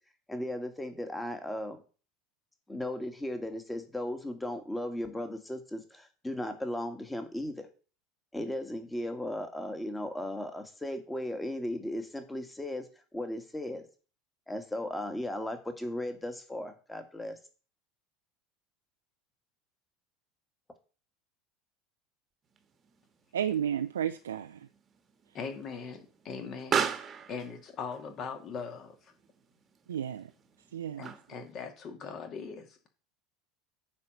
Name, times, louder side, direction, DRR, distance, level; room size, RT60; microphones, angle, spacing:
voice 1, 0.3-1.8 2.7-7.7 8.3-13.9 14.5-17.4, left 1 dB, 10° left, 1.8 m, -36 dB
Explosion, 22.5-31.5, right 7 dB, 30° right, 1.2 m, -39 dB
voice 2, 23.3-24.7 29.9-30.3 30.7-31.0, right 9 dB, 75° right, 0.4 m, -32 dB
voice 3, 25.3-29.1 31.0-32.9, left 5 dB, 40° left, 2.1 m, -41 dB
9.5 x 4.3 x 6.7 m
figure-of-eight pair, 75°, 0 cm